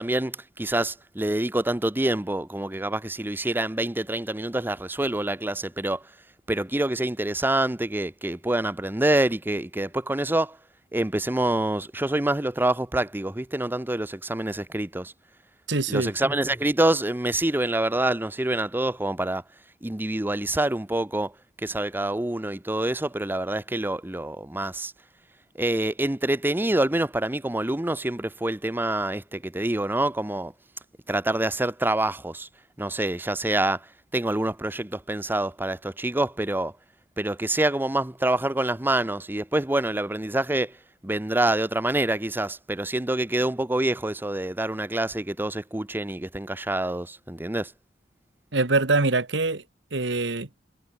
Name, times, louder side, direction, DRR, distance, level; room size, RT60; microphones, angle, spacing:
voice 1, 0.0-6.0 6.5-10.6 10.9-15.1 15.9-19.4 19.8-21.3 21.6-24.9 25.6-30.5 31.1-32.5 32.8-33.8 34.1-36.7 37.2-40.7 41.0-47.7, right 1 dB, 10° right, 0.7 m, -26 dB
voice 2, 15.7-16.1 48.5-49.6 49.9-50.5, right 3 dB, 75° right, 1.6 m, -24 dB
head